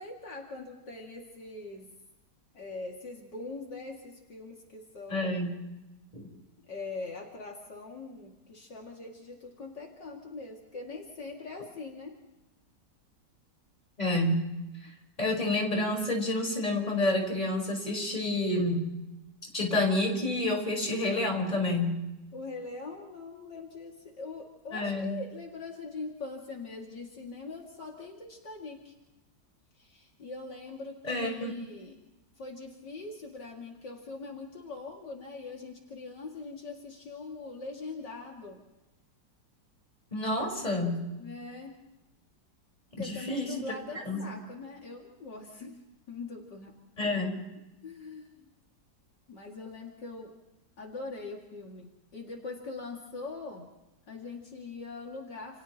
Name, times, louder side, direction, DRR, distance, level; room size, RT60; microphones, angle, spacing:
voice 1, 0.0-1.9 2.5-5.5 6.6-12.1 22.3-28.9 29.8-32.0 32.4-38.6 41.2-41.8 43.0-45.8 46.1-46.7 47.8-48.5 49.3-50.3 50.8-53.7 54.1-55.6, left 3 dB, 70° left, -1 dB, 3.1 m, -42 dB
voice 2, 5.1-5.5 6.1-6.2 14.0-14.4 15.2-18.8 19.5-21.9 24.7-25.1 31.0-31.6 40.1-41.0 43.0-43.5 44.0-44.2 47.0-47.4, left 2 dB, 20° left, 0 dB, 5.0 m, -29 dB
29.5 x 29.5 x 3.0 m, 0.99 s
omnidirectional pair, 2.0 m